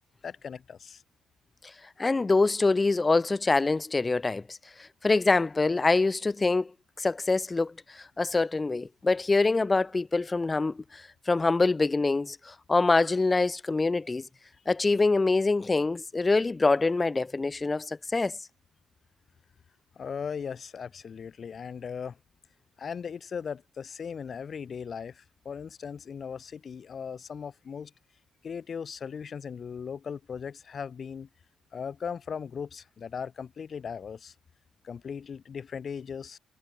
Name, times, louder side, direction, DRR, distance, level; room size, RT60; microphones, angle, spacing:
voice 1, 0.2-1.0 20.0-22.2 22.8-27.9 28.4-31.3 31.7-34.3 34.8-36.4, left 6 dB, 45° left, 5.8 m, -38 dB
voice 2, 2.0-4.6 5.0-6.7 7.0-14.2 14.7-18.3, left 3 dB, 25° left, 5.1 m, -25 dB
cardioid pair, 90°, 0 cm